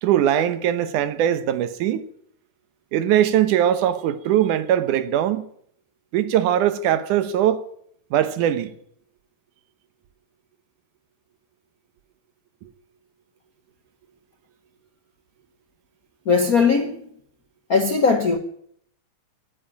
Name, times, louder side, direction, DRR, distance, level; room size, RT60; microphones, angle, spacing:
voice 1, 0.0-2.1 2.9-5.4 6.1-7.6 8.1-8.7, right 11 dB, 85° right, 2.5 m, -21 dB
voice 2, 16.3-17.0 17.7-18.4, left 5 dB, 60° left, 0.9 m, -19 dB
16.0 x 10.0 x 9.1 m
omnidirectional pair, 3.5 m